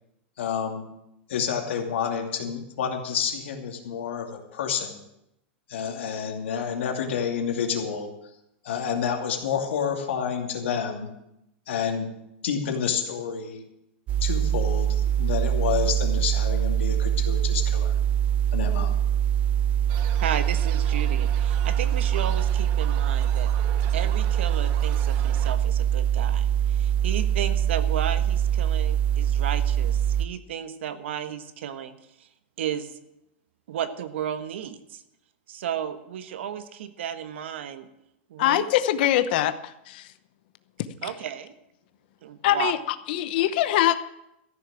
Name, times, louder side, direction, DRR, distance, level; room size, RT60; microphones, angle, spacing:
voice 1, 0.4-0.9 1.3-5.0 5.7-8.1 8.6-11.1 11.7-12.1 12.4-13.6 14.2-17.9 18.5-18.9, left 7 dB, 80° left, 3 dB, 2.6 m, -29 dB
sound 1, 14.1-30.3, right 10 dB, 25° right, 0.4 m, -23 dB
sound 2, 19.9-25.6, right 10 dB, 45° right, 1.0 m, -42 dB
voice 2, 20.1-23.5 23.9-32.3 32.6-32.9 33.7-35.0 35.5-37.9 38.3-38.6 41.0-41.5 42.2-42.7, right 9 dB, 75° right, 10 dB, 1.3 m, -33 dB
voice 3, 38.4-40.0 42.4-42.8 43.1-43.9, left 13 dB, 55° left, 12 dB, 0.8 m, -23 dB
14.0 x 6.7 x 8.9 m, 0.85 s
supercardioid pair, 160°, 6 cm